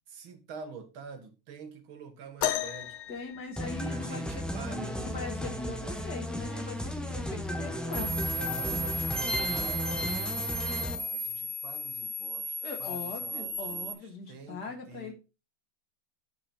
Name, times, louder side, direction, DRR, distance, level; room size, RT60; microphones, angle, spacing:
voice 1, 0.1-3.0 3.9-5.0 7.1-7.3 8.3-14.0 14.3-15.1, right 5 dB, 75° right, 2.2 m, -47 dB
sound 1, 2.4-4.3 6.0-6.1 6.9-7.1 8.0-8.1, left 11 dB, 90° left, 1.7 m, -34 dB
voice 2, 3.1-8.1 12.6-15.1, left 3 dB, 50° left, 2.7 m, -40 dB
sound 2, 3.6-10.9, left 1 dB, ahead, 0.6 m, -34 dB
sound 3, 7.9-13.9, equal, 30° left, 1.0 m, -35 dB
10.0 x 5.7 x 4.2 m
omnidirectional pair, 2.2 m